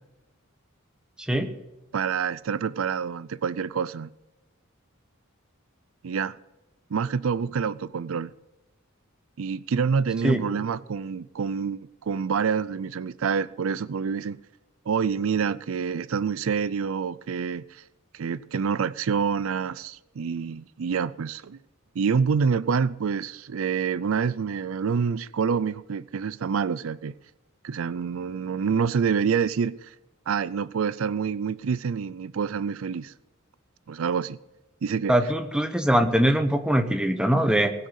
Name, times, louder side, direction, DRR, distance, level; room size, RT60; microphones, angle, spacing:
voice 1, 1.9-4.1 6.0-6.4 6.9-8.3 9.4-14.4 14.9-17.8 18.1-21.6 22.0-27.1 27.6-29.9 30.3-33.1 33.9-34.4 34.8-35.2, right 6 dB, 75° right, 0.4 m, -27 dB
voice 2, 35.1-37.7, right 1 dB, 5° right, 1.1 m, -22 dB
19.5 x 6.5 x 8.2 m
head